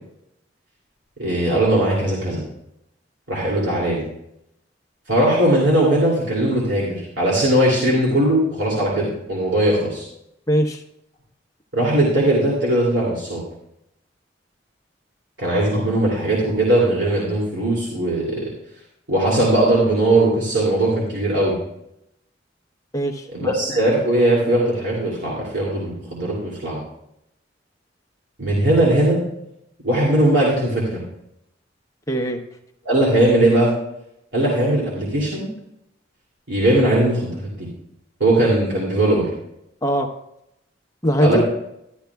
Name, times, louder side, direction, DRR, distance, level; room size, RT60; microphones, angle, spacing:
voice 1, 1.2-2.4 3.3-4.0 5.1-10.1 11.7-13.4 15.4-18.5 19.1-21.6 23.3-26.8 28.4-29.2 29.8-31.0 32.8-33.7 34.3-35.5 36.5-37.7 38.2-39.3 41.2-41.4, right 1 dB, 75° right, -5 dB, 2.8 m, -19 dB
voice 2, 10.5-10.8 22.9-23.5 32.1-32.4 39.8-40.1 41.0-41.4, equal, 20° left, 3 dB, 1.0 m, -20 dB
13.0 x 12.0 x 2.3 m, 0.79 s
head